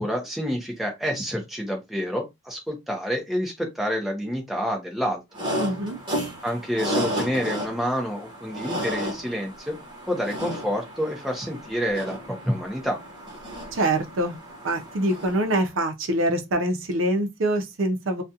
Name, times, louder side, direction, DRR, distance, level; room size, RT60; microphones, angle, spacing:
voice 1, 0.0-5.2 6.4-9.8 10.1-13.0, equal, ahead, 0.6 m, -28 dB
sound 1, 5.3-15.6, equal, 25° right, 1.0 m, -33 dB
voice 2, 5.6-6.0 13.7-14.4 14.6-18.2, right 1 dB, 75° right, 0.6 m, -24 dB
2.4 x 2.3 x 2.7 m
head